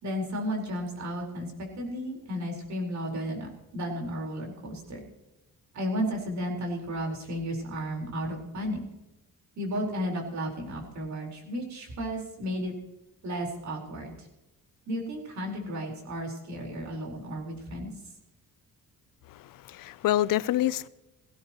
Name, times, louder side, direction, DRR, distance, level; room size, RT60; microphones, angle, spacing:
voice 1, 0.0-5.0 5.7-8.8 9.6-12.7 13.2-14.3 14.9-17.9, equal, 55° right, 4.5 m, -33 dB
voice 2, 19.3-20.9, left 13 dB, 80° left, 0.6 m, -27 dB
18.0 x 16.0 x 3.0 m
cardioid pair, 155°, 33 cm